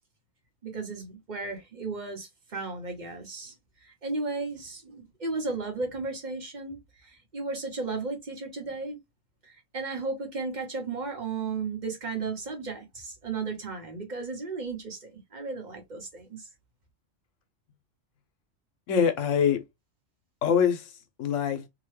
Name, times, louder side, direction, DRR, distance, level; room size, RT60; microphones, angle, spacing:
voice 1, 0.6-3.5 3.8-9.0 9.4-16.5, right 3 dB, 40° right, 0.9 m, -35 dB
voice 2, 18.9-19.6 20.4-21.7, left 7 dB, 85° left, 1.1 m, -24 dB
2.8 x 2.2 x 3.1 m
omnidirectional pair, 1.3 m